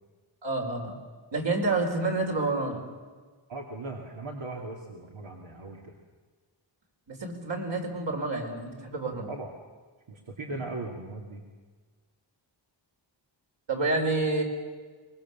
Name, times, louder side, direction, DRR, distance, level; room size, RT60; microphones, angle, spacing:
voice 1, 0.4-1.0 1.3-2.8 7.1-9.3 13.7-14.4, right 3 dB, 65° right, 1 dB, 4.9 m, -28 dB
voice 2, 3.5-5.9 9.3-9.5 10.1-11.4, right 2 dB, 85° right, 0 dB, 2.7 m, -38 dB
24.0 x 22.5 x 7.3 m, 1.4 s
wide cardioid pair, 125°, 46 cm